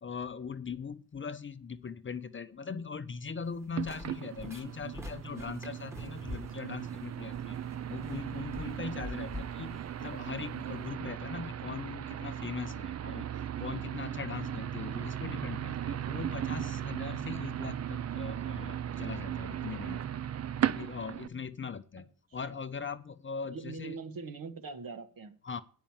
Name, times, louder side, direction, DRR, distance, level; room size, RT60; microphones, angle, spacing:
voice 1, 0.0-7.6 7.9-13.3 13.6-20.1 20.7-22.1 22.3-24.0 25.4-25.6, left 5 dB, 30° left, 12 dB, 0.6 m, -40 dB
sound 1, 3.4-10.9, left 1 dB, 5° right, 1.3 m, -47 dB
sound 2, 3.7-21.3, right 10 dB, 40° right, 0.5 m, -37 dB
voice 2, 23.5-25.3, right 4 dB, 60° right, 8 dB, 1.6 m, -42 dB
9.1 x 5.6 x 7.2 m, 0.41 s
wide cardioid pair, 135°, 38 cm